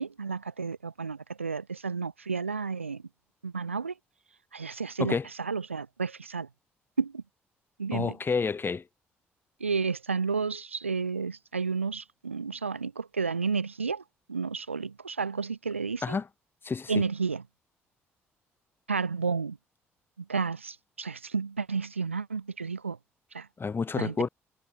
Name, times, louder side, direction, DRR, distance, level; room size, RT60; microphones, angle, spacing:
voice 1, 0.0-3.0 3.4-3.9 4.5-6.5 7.0-7.2 7.8-8.2 9.6-16.2 16.9-17.4 18.9-19.6 20.2-23.0 23.3-23.5 23.9-24.3, right 5 dB, 85° right, 2.7 m, -31 dB
voice 2, 7.9-8.8 16.0-16.2 16.6-17.0 23.6-24.3, left 5 dB, 35° left, 5.0 m, -29 dB
figure-of-eight pair, 45°, 7 cm